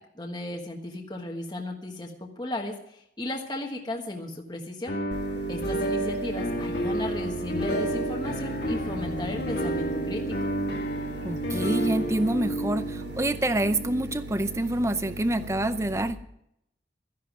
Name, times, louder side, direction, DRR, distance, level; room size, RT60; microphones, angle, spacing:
voice 1, 0.2-5.0 5.5-10.2, left 1 dB, 25° left, 1 dB, 1.4 m, -35 dB
sound 1, 4.9-14.8, right 1 dB, 60° left, 1.9 m, -30 dB
sound 2, 5.1-16.1, right 2 dB, 70° right, 1.5 m, -39 dB
voice 2, 11.2-16.2, right 1 dB, 15° right, 12 dB, 0.6 m, -27 dB
13.5 x 10.5 x 6.2 m, 0.77 s
head